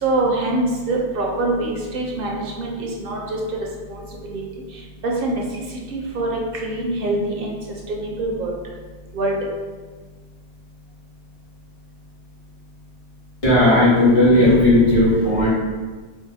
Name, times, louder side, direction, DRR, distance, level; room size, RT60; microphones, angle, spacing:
voice 1, 0.0-3.4 3.9-4.4 5.0-5.4 5.9-7.6 7.9-8.5 9.1-9.4, right 2 dB, 60° right, -1 dB, 0.8 m, -24 dB
voice 2, 13.4-15.5, left 1 dB, 65° left, -9 dB, 1.8 m, -15 dB
4.7 x 2.1 x 2.7 m, 1.4 s
omnidirectional pair, 1.1 m